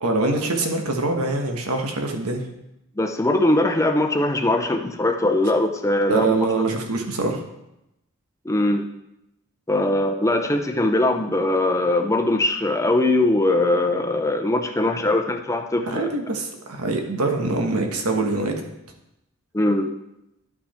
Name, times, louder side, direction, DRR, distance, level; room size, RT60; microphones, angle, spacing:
voice 1, 0.0-2.4 6.1-7.4 15.8-18.6, right 2 dB, 90° right, 3 dB, 1.3 m, -24 dB
voice 2, 3.0-6.3 8.4-8.9 9.7-16.1 19.5-19.9, left 2 dB, 15° left, 5 dB, 0.7 m, -21 dB
11.0 x 6.0 x 4.3 m, 0.87 s
head